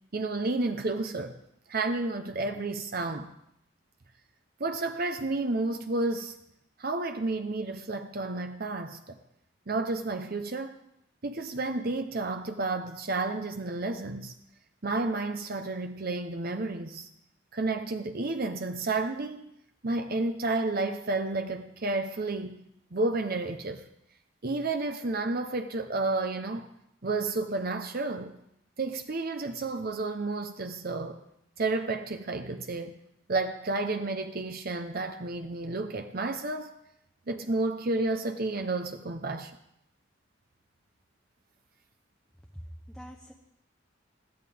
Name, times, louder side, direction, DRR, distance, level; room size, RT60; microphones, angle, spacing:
voice 1, 0.1-1.3 1.7-3.3 4.6-6.3 6.8-9.2 9.7-10.8 11.2-14.3 14.8-17.1 17.5-19.5 19.8-22.6 22.9-23.8 24.4-26.7 27.0-28.3 28.8-31.2 31.6-32.9 33.3-36.7 37.3-39.5, right 2 dB, 50° right, 0.8 m, -31 dB
voice 2, 42.5-43.3, equal, ahead, 0.9 m, -44 dB
21.0 x 14.5 x 3.5 m
head